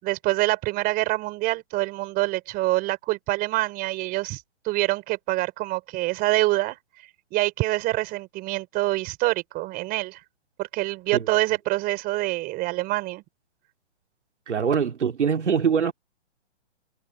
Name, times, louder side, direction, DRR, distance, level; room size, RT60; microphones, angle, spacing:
voice 1, 0.0-6.8 7.3-10.2 10.6-13.2, right 19 dB, 25° right, 4.8 m, -26 dB
voice 2, 14.5-15.9, right 7 dB, 85° right, 2.9 m, -23 dB
hypercardioid pair, 145°, 34 cm